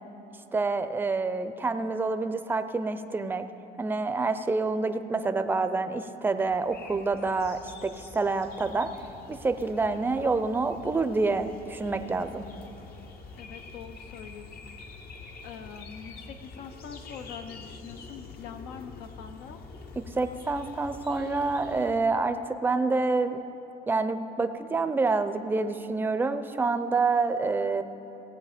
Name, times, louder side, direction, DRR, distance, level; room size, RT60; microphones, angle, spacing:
voice 1, 0.5-3.4 3.8-8.9 9.3-12.5 20.0-23.4 23.9-27.8, right 3 dB, 10° right, 10 dB, 0.5 m, -27 dB
sound 1, 6.4-22.0, left 4 dB, 65° left, 1.0 m, -46 dB
voice 2, 13.4-14.8 15.4-19.6, left 7 dB, 90° left, 8 dB, 0.7 m, -44 dB
16.0 x 7.8 x 5.0 m, 2.9 s
cardioid pair, 110°, 17 cm